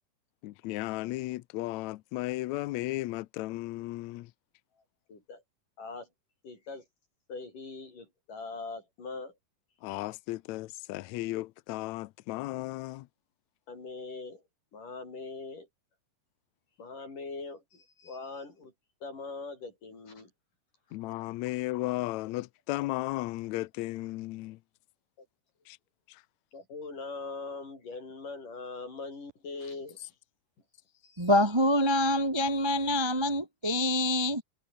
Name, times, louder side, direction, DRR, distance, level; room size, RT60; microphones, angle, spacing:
voice 1, 0.4-4.3 9.8-13.1 20.9-24.6 25.7-25.8, left 18 dB, 85° left, 1.6 m, -35 dB
voice 2, 5.1-5.4 5.8-6.1 6.4-6.9 7.3-9.3 13.7-14.4 14.7-15.7 16.8-18.7 19.0-20.3 26.5-30.0 31.0-31.3, left 3 dB, 65° left, 9.2 m, -41 dB
voice 3, 31.2-34.4, left 1 dB, 10° right, 1.3 m, -26 dB
omnidirectional pair, 4.0 m